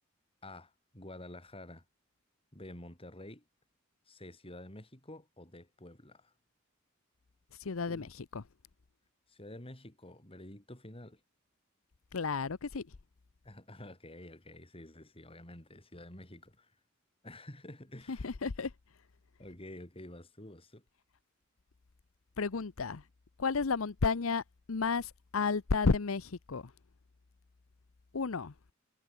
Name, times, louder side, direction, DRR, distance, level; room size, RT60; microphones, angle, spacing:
voice 1, 0.4-1.8 2.5-3.4 4.1-6.3 7.9-8.1 9.3-11.2 13.4-16.7 17.2-18.3 19.4-20.8, left 1 dB, 30° left, 4.7 m, -49 dB
voice 2, 7.6-8.4 12.1-12.9 18.1-18.7 22.4-23.0 23.4-24.4 24.7-26.7 28.1-28.5, left 4 dB, 80° left, 0.8 m, -32 dB
head